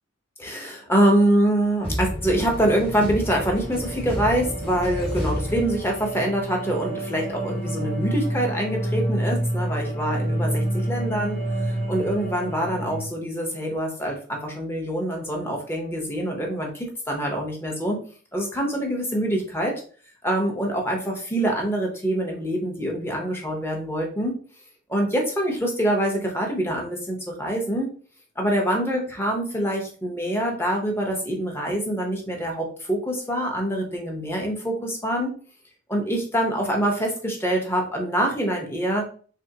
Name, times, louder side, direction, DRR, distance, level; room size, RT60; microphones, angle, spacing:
voice 1, 0.4-18.0 18.3-19.7 20.2-24.4 24.9-27.9 28.4-35.4 35.9-39.1, right 1 dB, 10° left, 0 dB, 0.8 m, -25 dB
sound 1, 1.8-6.3, equal, 25° left, 1.2 m, -31 dB
sound 2, 2.1-13.1, right 1 dB, 45° left, 1.0 m, -29 dB
3.4 x 3.3 x 2.8 m, 0.43 s
head